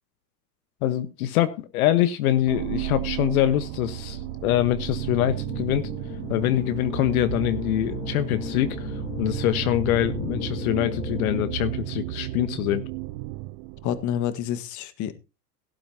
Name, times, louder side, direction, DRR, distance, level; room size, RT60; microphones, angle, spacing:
voice 1, 0.8-5.9 6.3-12.9, left 13 dB, 60° left, 11 dB, 1.4 m, -24 dB
sound 1, 2.5-14.3, right 17 dB, 45° right, 0.8 m, -33 dB
sound 2, 3.1-11.5, left 6 dB, 85° left, 3.5 m, -36 dB
voice 2, 13.8-15.1, left 10 dB, 35° left, 12 dB, 1.7 m, -28 dB
17.0 x 12.0 x 2.9 m, 0.29 s
hypercardioid pair, 90°, 49 cm